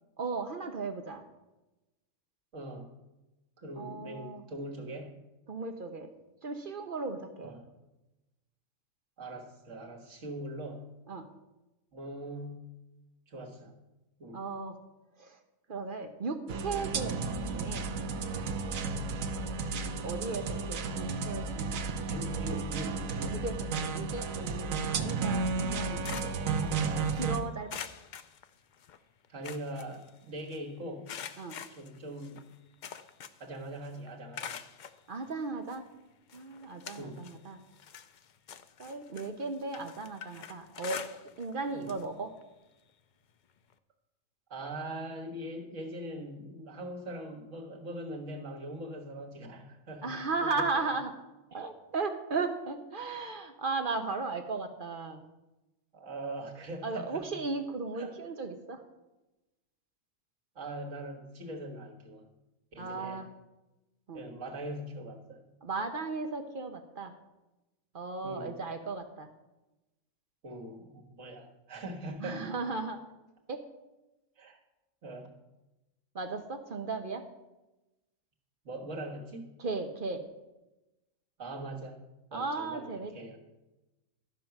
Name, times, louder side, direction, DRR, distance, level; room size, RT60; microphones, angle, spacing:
voice 1, 0.2-1.2 3.8-4.4 5.5-6.1 6.4-7.5 11.1-11.3 14.3-14.8 15.2-15.4 15.7-17.2 17.5-17.9 20.0-21.8 23.3-27.8 31.4-31.6 35.1-35.8 36.3-37.6 38.8-41.0 41.4-42.3 50.0-51.1 51.5-55.2 56.8-58.8 62.8-63.3 64.1-64.2 65.6-67.1 67.9-69.3 72.2-73.0 73.5-73.6 76.1-77.2 79.6-80.2 82.3-83.1, right 4 dB, 50° right, 6 dB, 0.8 m, -36 dB
voice 2, 2.5-2.9 3.6-5.1 7.4-7.7 9.2-10.9 11.9-12.7 13.3-13.7 14.2-14.4 22.1-23.4 25.2-25.8 29.3-31.1 31.7-32.4 33.4-34.6 37.0-37.3 41.7-41.9 44.5-50.8 55.9-57.4 57.9-58.1 60.6-62.3 62.7-63.3 64.1-65.4 68.2-68.6 70.4-72.5 74.4-74.6 75.0-75.3 78.6-79.5 81.4-82.0 82.3-83.4, right 1 dB, 65° right, 0 dB, 1.9 m, -41 dB
sound 1, 16.5-27.4, right 4 dB, 80° right, 1.2 m, -33 dB
sound 2, 25.7-27.2 27.7-29.0 29.2-30.6 31.1-33.6 33.8-35.0 35.7-35.8 36.3-37.4 37.7-41.5 41.8-42.0 42.4-42.5 43.7-43.8, left 8 dB, 70° left, 0.4 m, -45 dB
13.0 x 5.3 x 5.9 m, 1.0 s
omnidirectional pair, 1.4 m